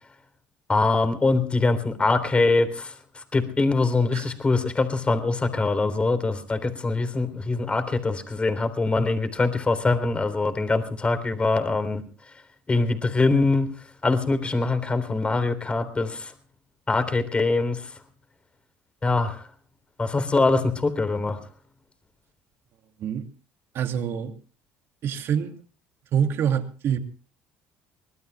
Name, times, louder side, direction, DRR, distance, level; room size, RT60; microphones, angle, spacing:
voice 1, 0.7-12.3 12.7-16.3 16.9-18.0 19.0-19.5 20.0-21.4, left 3 dB, 25° left, 9 dB, 3.7 m, -23 dB
voice 2, 23.7-24.4 25.0-25.5 26.1-27.0, right 8 dB, 60° right, 6 dB, 2.6 m, -25 dB
24.5 x 20.0 x 2.3 m, 0.39 s
supercardioid pair, 85°, 5 cm